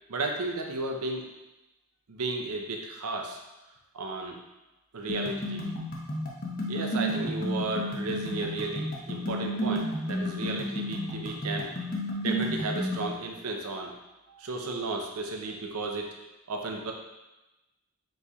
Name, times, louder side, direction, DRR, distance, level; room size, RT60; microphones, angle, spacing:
voice 1, 0.1-1.3 2.1-3.4 3.9-4.4 4.9-5.8 6.7-11.7 12.2-13.9 14.4-16.1 16.5-16.9, right 3 dB, 85° right, 2 dB, 0.6 m, -33 dB
sound 1, 5.1-13.1, equal, 40° left, 0.7 m, -32 dB
4.1 x 3.1 x 3.5 m, 1.0 s
head